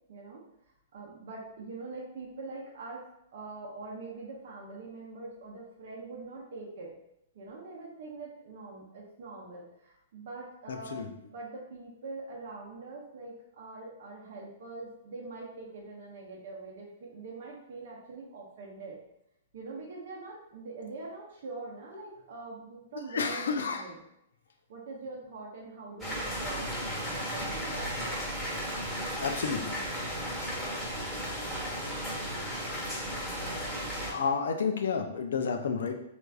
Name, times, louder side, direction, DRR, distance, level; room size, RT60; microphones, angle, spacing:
voice 1, 0.1-3.0 3.3-6.9 7.3-19.0 19.5-24.0 24.7-26.7 27.2-28.3, right 3 dB, 60° right, -4 dB, 0.7 m, -43 dB
voice 2, 10.7-11.0 23.1-23.8 29.2-29.8 34.0-35.9, left 5 dB, 75° left, 5 dB, 0.4 m, -30 dB
sound 1, 26.0-34.1, equal, 5° left, 1.1 m, -35 dB
3.2 x 2.4 x 2.3 m, 0.80 s
hypercardioid pair, 120°, 0 cm